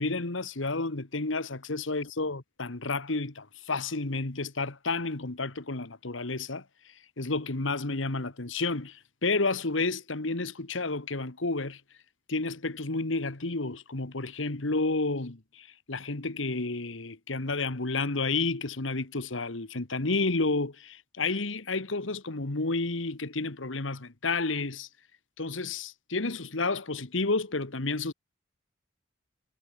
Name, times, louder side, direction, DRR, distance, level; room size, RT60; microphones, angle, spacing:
voice 1, 0.0-6.6 7.2-11.8 12.3-24.9 25.4-28.1, left 3 dB, 85° left, 1.7 m, -31 dB
head